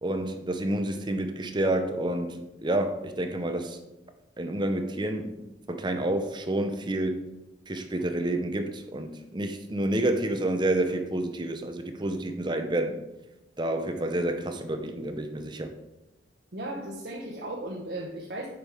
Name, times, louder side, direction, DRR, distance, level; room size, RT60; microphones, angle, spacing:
voice 1, 0.0-2.3 2.6-3.8 4.4-7.2 7.7-13.0 13.6-15.7, right 1 dB, 25° right, 0.7 m, -29 dB
voice 2, 16.5-18.5, right 1 dB, 60° right, 1.0 m, -36 dB
7.8 x 5.4 x 4.8 m
head